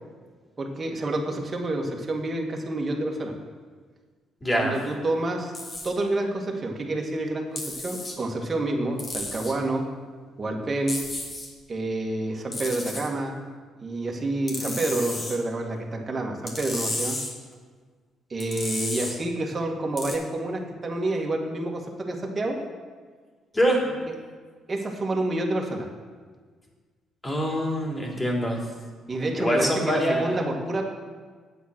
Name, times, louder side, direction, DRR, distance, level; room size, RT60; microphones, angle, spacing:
voice 1, 0.6-3.3 4.5-5.5 5.8-9.8 10.4-11.0 11.7-13.4 13.8-17.2 18.3-22.6 24.0-24.1 24.7-25.9 29.1-30.8, right 2 dB, 35° right, 1 dB, 2.1 m, -28 dB
voice 2, 4.4-4.7 23.5-23.8 27.2-28.6 29.4-30.5, equal, 20° left, -1 dB, 3.3 m, -24 dB
sound 1, 5.5-5.9 7.6-8.2 9.0-9.5 10.9-11.5 12.5-13.1 14.5-15.4 16.5-17.3 18.4-19.1 20.0-20.2, left 2 dB, 40° left, 2.6 m, -33 dB
8.3 x 8.2 x 6.3 m, 1.5 s
hypercardioid pair, 50°, 0 cm